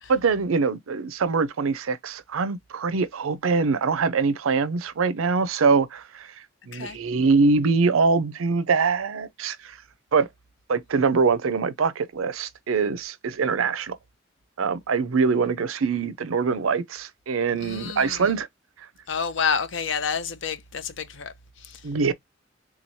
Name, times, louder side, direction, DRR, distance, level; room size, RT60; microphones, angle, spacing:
voice 1, 0.1-6.3 6.7-9.8 10.1-10.3 10.7-14.0 14.6-18.5 21.8-22.1, right 4 dB, 90° right, 0.5 m, -23 dB
voice 2, 17.6-18.3 19.1-21.8, left 6 dB, 65° left, 0.6 m, -29 dB
3.7 x 3.1 x 2.6 m
head